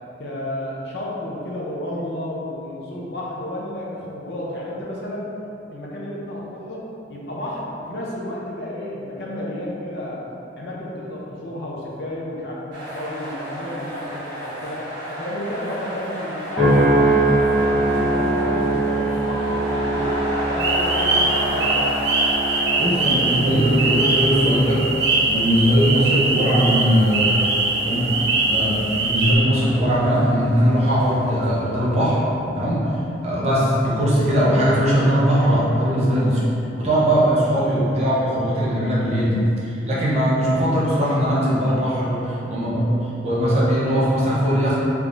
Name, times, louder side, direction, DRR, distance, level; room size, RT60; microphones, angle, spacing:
voice 1, 0.2-5.3 5.7-10.2 10.6-17.2 17.5-21.8, left 1 dB, 60° left, -5 dB, 0.6 m, -32 dB
sound 1, 12.7-31.6, equal, 90° right, 1.1 m, -32 dB
sound 2, 16.6-31.0 31.6-32.0, right 1 dB, 5° right, 1.0 m, -25 dB
sound 3, 20.6-29.4, right 3 dB, 70° right, 0.5 m, -22 dB
voice 2, 22.8-24.9 25.3-27.4 27.8-28.1 28.5-32.2 32.6-32.9 33.2-36.4 36.8-44.8, equal, 35° right, -8 dB, 0.7 m, -20 dB
3.4 x 3.3 x 2.5 m, 2.9 s
head